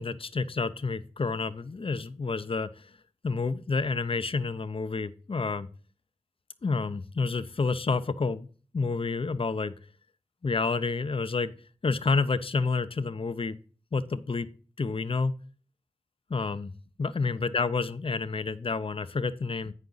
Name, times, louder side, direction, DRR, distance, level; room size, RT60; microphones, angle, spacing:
voice 1, 0.0-2.9 3.2-5.7 6.6-8.5 8.7-9.7 10.4-11.5 11.8-13.6 13.9-14.5 14.8-15.3 16.3-16.7 17.0-19.7, left 4 dB, 55° left, 13 dB, 0.6 m, -29 dB
8.3 x 5.7 x 3.9 m, 0.40 s
wide cardioid pair, 45°, 11 cm